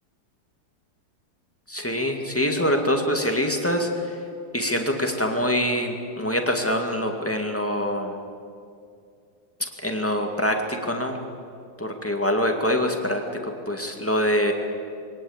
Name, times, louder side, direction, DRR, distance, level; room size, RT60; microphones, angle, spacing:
voice 1, 1.7-4.2 4.5-8.2 9.6-11.2 11.8-14.5, equal, 5° left, 3 dB, 2.0 m, -25 dB
23.0 x 18.0 x 8.8 m, 2.4 s
omnidirectional pair, 2.0 m